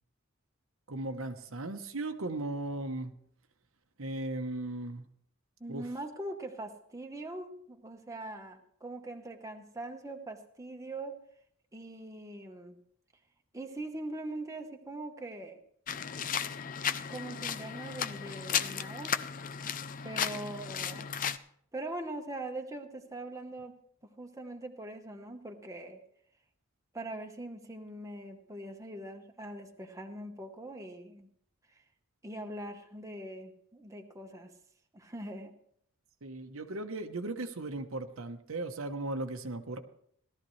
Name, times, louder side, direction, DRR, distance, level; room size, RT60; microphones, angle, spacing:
voice 1, 0.9-3.1 4.0-5.0 5.7-5.9 36.2-39.8, right 2 dB, 75° right, 6 dB, 1.0 m, -37 dB
voice 2, 5.6-11.2 11.7-12.8 13.5-15.6 17.1-19.2 20.0-21.1 21.7-23.7 24.0-26.0 26.9-31.3 31.7-31.8 32.2-34.5 34.9-35.5, right 1 dB, 15° right, 3 dB, 1.1 m, -42 dB
sound 1, 15.9-21.4, left 8 dB, 40° left, 0.5 m, -35 dB
17.5 x 12.5 x 3.2 m, 0.66 s
head